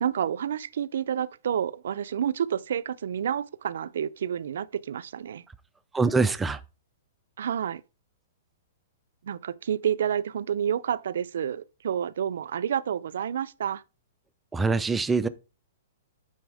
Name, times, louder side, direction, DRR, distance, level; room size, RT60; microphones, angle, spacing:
voice 1, 0.0-5.4 7.4-7.8 9.2-13.8, right 9 dB, 70° right, 0.5 m, -29 dB
voice 2, 5.9-6.6 14.5-15.3, right 4 dB, 5° right, 0.3 m, -24 dB
9.4 x 4.2 x 4.8 m
hypercardioid pair, 170°, 0 cm